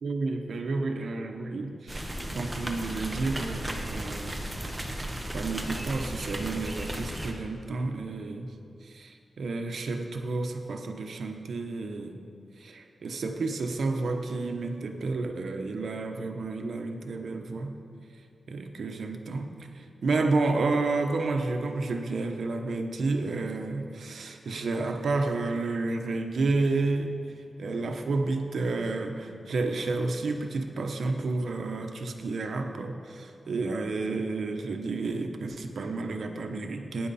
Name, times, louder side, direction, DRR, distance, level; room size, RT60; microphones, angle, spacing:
voice 1, 0.0-4.5 5.3-8.5 8.8-12.2 12.6-17.8 18.5-27.2 27.6-37.1, right 3 dB, 75° right, 5 dB, 1.0 m, -31 dB
sound 1, 1.9-7.3, right 1 dB, 10° right, 1.1 m, -35 dB
18.0 x 9.6 x 4.2 m, 2.5 s
wide cardioid pair, 120°, 0 cm